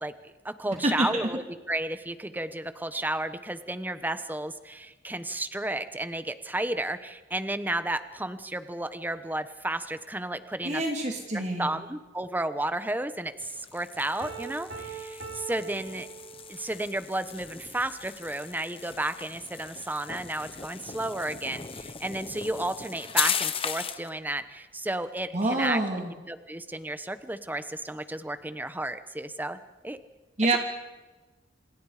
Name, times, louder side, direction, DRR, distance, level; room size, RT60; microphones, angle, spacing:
voice 1, 0.0-10.8 11.3-16.1 16.5-25.8 26.3-29.6 29.8-30.0, right 1 dB, 10° right, 11 dB, 1.1 m, -32 dB
voice 2, 10.6-11.8 25.3-26.1 30.4-30.6, right 2 dB, 40° right, 1 dB, 2.8 m, -26 dB
sound 1, 13.4-24.1, left 7 dB, 30° left, 1.2 m, -37 dB
Piano, 14.2-16.8, right 6 dB, 65° right, 5.1 m, -41 dB
27.5 x 27.5 x 5.1 m, 1.2 s
head